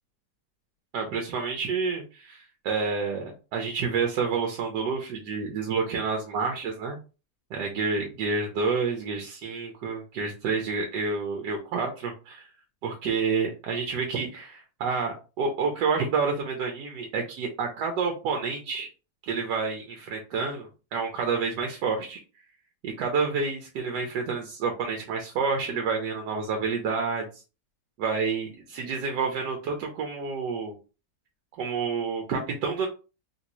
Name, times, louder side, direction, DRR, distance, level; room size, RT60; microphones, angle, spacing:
voice 1, 0.9-7.0 7.5-12.5 12.8-18.9 19.3-22.2 22.8-27.4 28.0-30.7 31.6-32.9, right 5 dB, 85° right, 2 dB, 1.3 m, -29 dB
3.4 x 2.6 x 2.9 m, 0.32 s
omnidirectional pair, 1.8 m